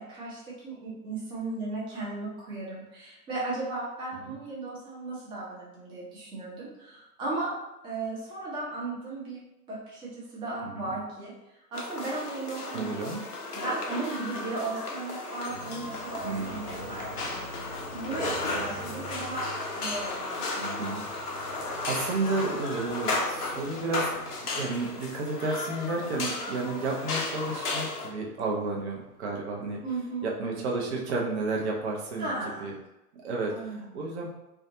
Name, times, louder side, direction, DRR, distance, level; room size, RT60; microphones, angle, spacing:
voice 1, 0.0-7.6 7.8-9.4 9.7-11.3 11.7-13.1 13.5-19.5 19.8-20.7 29.8-30.3 32.2-32.7 33.5-33.9, right 2 dB, 10° right, -6 dB, 0.5 m, -36 dB
voice 2, 10.6-11.0 12.7-13.2 16.2-16.9 20.6-21.0 21.4-21.6 21.9-24.1 24.5-29.8 30.2-32.3 32.6-32.7 33.2-33.5 33.8-34.3, right 3 dB, 45° right, -1 dB, 0.7 m, -32 dB
sound 1, 11.7-28.1, left 2 dB, 90° left, 0.6 m, -34 dB
sound 2, 15.5-31.0, equal, 75° right, 0.8 m, -48 dB
2.4 x 2.3 x 2.6 m, 0.92 s
figure-of-eight pair, 105°, 45 cm